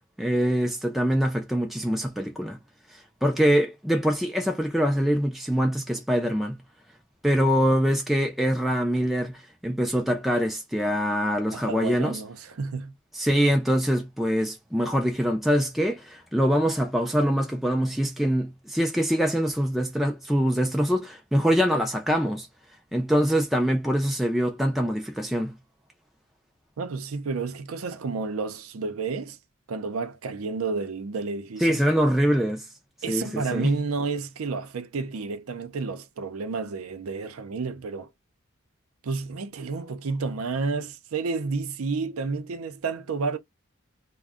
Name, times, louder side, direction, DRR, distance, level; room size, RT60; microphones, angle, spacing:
voice 1, 0.2-2.6 2.9-6.6 7.2-12.2 13.1-22.5 22.9-25.5 31.6-32.7 33.1-33.7, equal, ahead, 0.3 m, -24 dB
voice 2, 11.5-12.9 26.8-29.4 29.7-31.9 33.0-38.1 39.0-43.4, right 4 dB, 75° right, 0.5 m, -31 dB
2.5 x 2.1 x 3.5 m
head